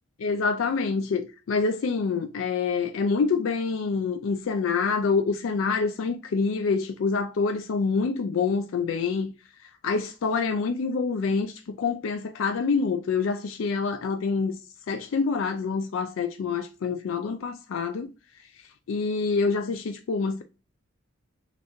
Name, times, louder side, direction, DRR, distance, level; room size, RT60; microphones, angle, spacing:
voice 1, 0.2-9.3 9.8-14.6 14.9-18.1 18.9-20.4, left 4 dB, 85° left, 0.4 m, -26 dB
4.1 x 2.5 x 3.0 m
head